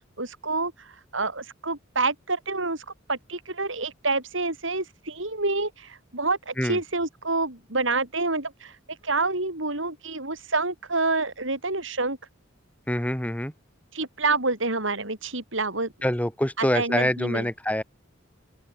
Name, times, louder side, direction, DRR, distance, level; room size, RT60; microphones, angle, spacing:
voice 1, 0.2-8.8 9.0-12.2 13.9-15.9 16.6-17.5, right 3 dB, 70° right, 6.0 m, -28 dB
voice 2, 12.9-13.5 16.0-17.8, left 1 dB, 5° left, 3.7 m, -25 dB
open air
head